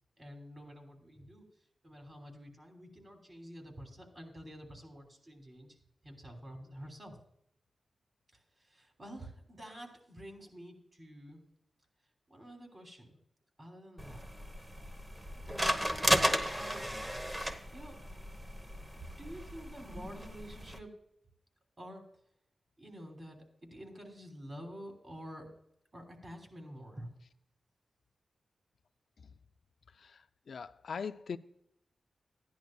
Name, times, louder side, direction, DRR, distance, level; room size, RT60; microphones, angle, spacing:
voice 1, 0.2-1.5 1.8-5.8 6.0-7.2 8.3-11.5 12.3-13.2 13.6-14.3 15.4-15.8 16.3-16.9 17.7-18.0 19.2-20.9 21.8-22.0 22.8-23.4 23.7-25.5 25.9-27.1, equal, 35° right, 3.1 m, -49 dB
sound 1, 14.0-20.8, equal, 15° right, 1.0 m, -34 dB
voice 2, 29.9-31.4, left 6 dB, 75° left, 0.4 m, -41 dB
14.5 x 10.5 x 2.3 m
cardioid pair, 65°, 0 cm